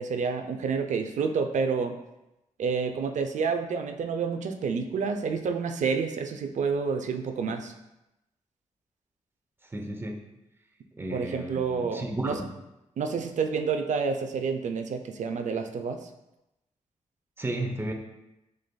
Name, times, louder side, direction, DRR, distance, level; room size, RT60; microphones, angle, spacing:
voice 1, 0.0-1.9 2.6-7.7 11.1-12.4 13.0-16.1, right 5 dB, 70° right, 6 dB, 0.4 m, -29 dB
voice 2, 9.7-10.3 11.0-12.5 13.2-13.3 17.4-17.9, right 1 dB, 15° right, 3 dB, 0.6 m, -33 dB
6.3 x 2.5 x 2.2 m, 0.93 s
cardioid pair, 65°, 13 cm